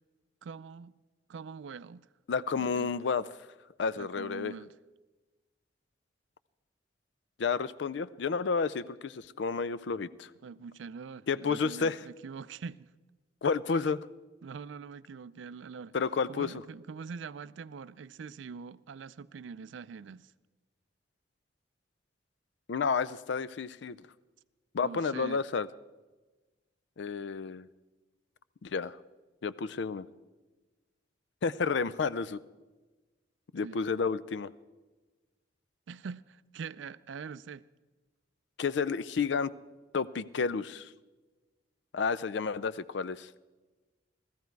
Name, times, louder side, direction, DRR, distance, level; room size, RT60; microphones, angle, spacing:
voice 1, 0.4-0.9 1.3-2.1 2.5-2.9 4.0-4.7 10.4-12.9 14.4-16.0 16.3-20.3 24.8-25.4 33.6-33.8 35.9-37.6, right 5 dB, 75° right, 0.4 m, -44 dB
voice 2, 2.3-3.5 3.8-4.5 7.4-10.3 11.3-12.0 13.4-14.0 15.9-16.6 22.7-24.1 24.7-25.7 27.0-27.7 28.6-29.0 29.4-30.1 31.4-32.4 33.5-34.5 38.6-39.5 39.9-40.9 41.9-43.3, left 5 dB, 70° left, 0.4 m, -31 dB
17.0 x 14.0 x 4.6 m
head